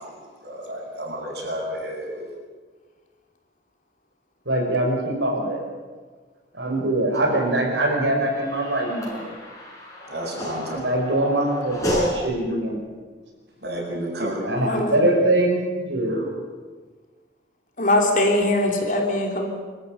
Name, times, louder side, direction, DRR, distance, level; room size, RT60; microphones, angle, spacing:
voice 1, 0.0-2.3 10.1-10.8 13.6-14.4, right 1 dB, 65° right, -2 dB, 7.8 m, -31 dB
voice 2, 4.5-5.6 6.5-9.3 10.7-12.8 14.4-16.3, right 1 dB, 80° right, 0 dB, 5.8 m, -23 dB
sound 1, 7.1-12.2, equal, 15° left, 6.1 m, -30 dB
voice 3, 14.7-15.0 17.8-19.5, left 1 dB, 45° left, 2 dB, 3.4 m, -21 dB
26.0 x 14.0 x 9.4 m, 1.4 s
head